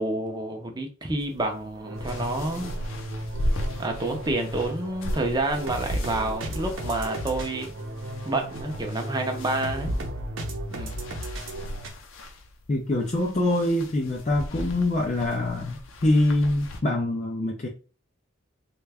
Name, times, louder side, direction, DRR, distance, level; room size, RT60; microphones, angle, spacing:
voice 1, 0.0-2.7 3.8-7.7 8.3-9.9 10.7-11.0, right 2 dB, 20° right, 0.6 m, -29 dB
sound 1, 1.2-16.8, left 1 dB, 85° left, 0.6 m, -37 dB
sound 2, 1.7-11.9, right 1 dB, 75° right, 0.7 m, -35 dB
voice 2, 12.7-17.7, left 1 dB, 35° left, 0.5 m, -24 dB
3.3 x 2.3 x 3.3 m
head